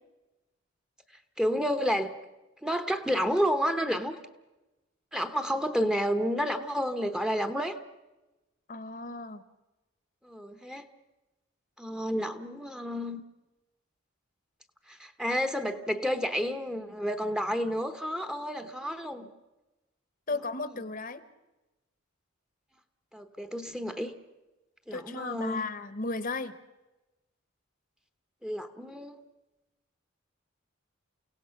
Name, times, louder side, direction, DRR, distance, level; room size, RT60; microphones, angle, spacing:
voice 1, 1.4-2.1 2.6-4.2 5.1-7.8 10.2-10.8 11.8-13.2 14.9-19.3 23.1-24.1 24.9-25.6 28.4-29.2, equal, 5° right, 8 dB, 0.9 m, -30 dB
voice 2, 8.7-9.4 20.3-21.2 24.9-26.5, left 3 dB, 45° left, 13 dB, 1.0 m, -35 dB
29.5 x 17.0 x 5.8 m, 1.0 s
head